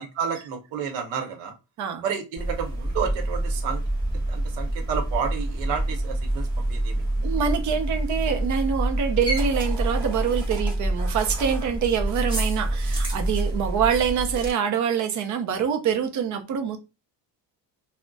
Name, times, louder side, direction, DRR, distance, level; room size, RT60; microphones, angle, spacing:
voice 1, 0.0-1.5 2.0-3.8 4.3-7.0, right 7 dB, 85° right, 0.9 m, -31 dB
sound 1, 2.4-14.5, right 1 dB, 10° right, 1.1 m, -27 dB
voice 2, 7.2-16.8, right 7 dB, 45° right, 0.5 m, -25 dB
2.3 x 2.1 x 3.8 m
cardioid pair, 170°, 44 cm